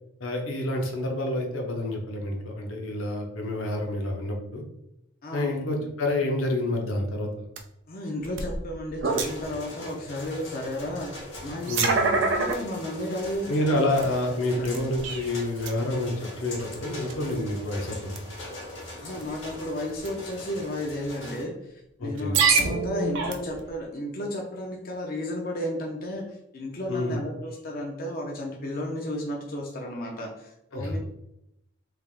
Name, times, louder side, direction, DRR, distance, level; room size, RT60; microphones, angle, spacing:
voice 1, 0.2-4.6 5.3-7.4 11.7-11.9 13.5-18.2 22.0-22.4 26.9-27.2 30.7-31.0, left 1 dB, 85° left, 1 dB, 0.8 m, -28 dB
voice 2, 5.2-5.8 7.9-13.8 14.2-14.9 19.0-31.0, left 1 dB, 45° left, 0 dB, 0.5 m, -33 dB
sound 1, 7.6-7.7 8.2-9.5 10.2-10.3 11.4-12.6 13.2-13.3 14.0-14.1 14.6-15.3 15.6-15.7 16.7-16.8 17.1-17.3 18.2-18.4 19.1-19.4 20.0-20.1 21.1-21.2 22.2-23.7, right 4 dB, 60° right, 0.5 m, -25 dB
sound 2, 9.1-21.4, left 1 dB, 60° left, 1.2 m, -42 dB
3.4 x 3.3 x 2.4 m, 0.82 s
head